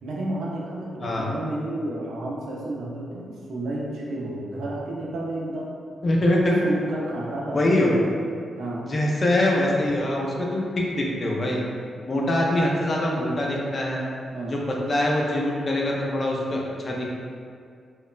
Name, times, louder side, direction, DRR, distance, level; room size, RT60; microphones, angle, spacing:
voice 1, 0.0-5.7 6.6-8.1 8.6-8.9 14.3-14.6, right 1 dB, 85° right, -3 dB, 0.4 m, -31 dB
voice 2, 6.0-6.6 7.5-7.9 8.8-11.6 12.0-14.0 14.5-17.1, left 1 dB, 30° left, -2 dB, 0.3 m, -23 dB
3.0 x 2.0 x 2.3 m, 2.3 s
wide cardioid pair, 155°, 0 cm